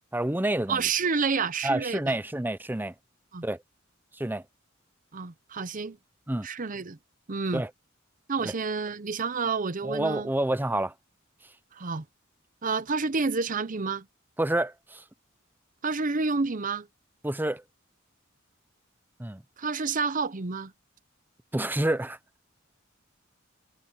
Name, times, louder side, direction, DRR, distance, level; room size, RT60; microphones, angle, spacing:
voice 1, 0.1-0.8 1.6-2.9 3.4-3.6 4.1-4.4 6.3-6.5 7.5-7.7 8.4-8.5 9.8-10.9 14.4-15.0 17.2-17.6 19.2-19.4 21.5-22.2, right 1 dB, 10° right, 0.7 m, -28 dB
voice 2, 0.7-2.0 3.3-3.4 5.1-6.0 6.4-7.0 7.3-7.6 8.3-10.3 11.8-12.0 12.6-14.1 15.8-16.9 19.6-20.7, right 4 dB, 40° right, 0.8 m, -29 dB
head